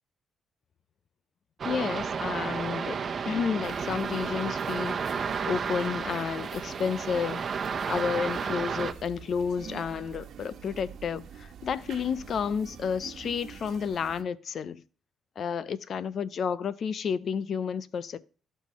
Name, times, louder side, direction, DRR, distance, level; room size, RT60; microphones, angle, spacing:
voice 1, 1.6-3.0 3.3-7.5 7.9-14.8 15.4-18.2, left 6 dB, 55° left, 0.6 m, -31 dB
sound 1, 1.6-8.9, right 6 dB, 45° right, 0.9 m, -32 dB
sound 2, 3.6-14.2, right 8 dB, 70° right, 1.2 m, -46 dB
15.5 x 5.7 x 3.1 m
cardioid pair, 90°, 0 cm